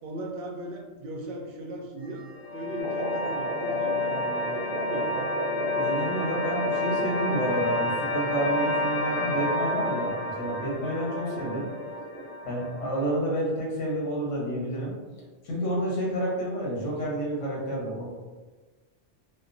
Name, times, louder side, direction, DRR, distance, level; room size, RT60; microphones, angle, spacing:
voice 1, 0.0-2.3 2.5-5.1 10.8-11.1, right 1 dB, 60° right, 0 dB, 0.6 m, -38 dB
sound 1, 2.0-13.0, left 1 dB, 35° left, 0.8 m, -30 dB
sound 2, 2.8-12.4, right 2 dB, 90° right, 1.0 m, -37 dB
voice 2, 5.7-11.7 12.4-14.9 15.4-18.1, right 1 dB, 75° left, -4 dB, 1.2 m, -29 dB
2.9 x 2.1 x 2.5 m, 1.3 s
omnidirectional pair, 1.3 m